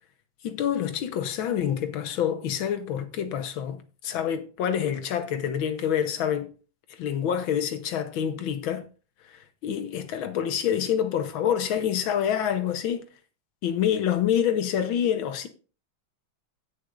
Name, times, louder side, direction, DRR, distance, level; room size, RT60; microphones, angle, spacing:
voice 1, 0.4-6.5 7.0-8.8 9.3-13.0 13.6-15.5, left 9 dB, 80° left, 1.8 m, -27 dB
16.0 x 6.8 x 2.5 m
omnidirectional pair, 2.2 m